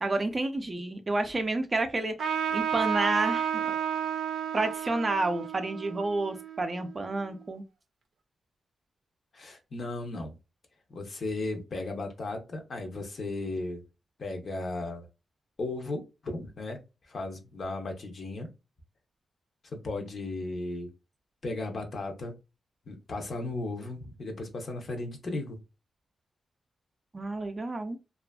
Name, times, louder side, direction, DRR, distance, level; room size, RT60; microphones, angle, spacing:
voice 1, 0.0-3.8 4.5-7.6 27.1-28.0, right 2 dB, 30° right, 0.4 m, -30 dB
Trumpet, 2.2-7.2, right 8 dB, 85° right, 0.4 m, -32 dB
voice 2, 9.3-10.4 10.9-13.8 14.2-15.1 15.6-16.8 17.1-18.5 19.7-20.9 21.4-22.4 22.9-25.6, left 2 dB, 50° left, 0.6 m, -35 dB
2.5 x 2.4 x 2.2 m
wide cardioid pair, 110°, 0 cm